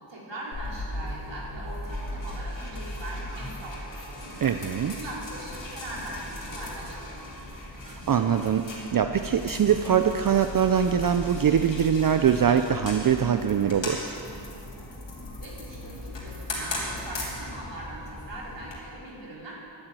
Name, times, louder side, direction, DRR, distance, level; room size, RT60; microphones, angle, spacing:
voice 1, 0.0-4.5 4.9-7.5 15.4-19.5, right 1 dB, 75° right, -5 dB, 3.6 m, -41 dB
sound 1, 0.5-18.8, left 1 dB, 85° left, 3.2 m, -37 dB
voice 2, 4.4-5.0 7.8-14.2, right 8 dB, 50° right, 8 dB, 0.5 m, -23 dB
12.0 x 7.6 x 9.0 m, 2.8 s
wide cardioid pair, 80°, 43 cm